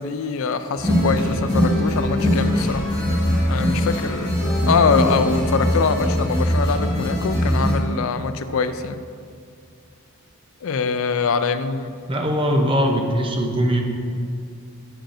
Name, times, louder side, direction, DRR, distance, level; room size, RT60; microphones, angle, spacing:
voice 1, 0.0-2.9 3.5-9.0 10.6-11.9, left 5 dB, 65° left, 11 dB, 0.4 m, -23 dB
sound 1, 0.8-7.7, equal, 20° left, 1.8 m, -21 dB
voice 2, 12.1-13.8, equal, 25° right, 2 dB, 0.7 m, -20 dB
8.9 x 8.8 x 2.7 m, 2.3 s
head